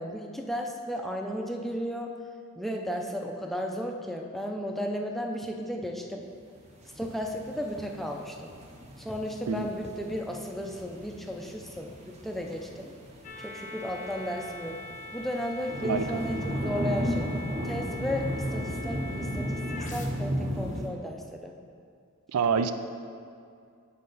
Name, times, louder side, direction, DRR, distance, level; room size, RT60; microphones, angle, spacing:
voice 1, 0.0-2.2 2.6-6.2 7.0-8.5 9.0-12.9 13.4-14.8 15.1-17.3 17.6-21.6, equal, ahead, 1 dB, 0.4 m, -34 dB
sound 1, 6.6-20.9, equal, 30° right, 0.8 m, -35 dB
sound 2, 13.2-20.1, left 2 dB, 35° left, 0.7 m, -43 dB
voice 2, 22.3-22.7, right 6 dB, 85° right, 10 dB, 0.4 m, -26 dB
8.5 x 5.4 x 4.0 m, 2.3 s
head